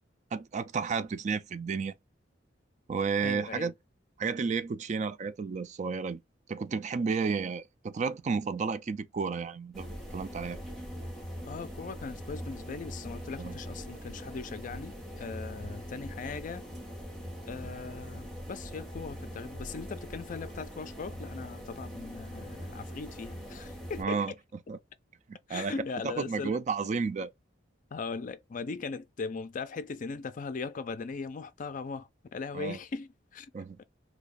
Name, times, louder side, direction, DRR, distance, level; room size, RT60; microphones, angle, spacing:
voice 1, 0.3-1.9 2.9-3.7 4.2-6.2 6.5-10.6 13.4-13.6 24.0-24.3 24.7-24.8 25.3-25.7 26.0-27.3 32.5-32.8 33.5-33.8, right 5 dB, 40° right, 0.3 m, -32 dB
voice 2, 3.2-3.7 11.5-16.6 17.5-24.2 25.5-26.6 27.9-33.5 33.8-33.9, left 4 dB, 45° left, 0.4 m, -39 dB
Cruiseship - inside crew cabin daytime, 9.7-24.0, equal, ahead, 0.9 m, -42 dB
2.7 x 2.3 x 4.0 m
head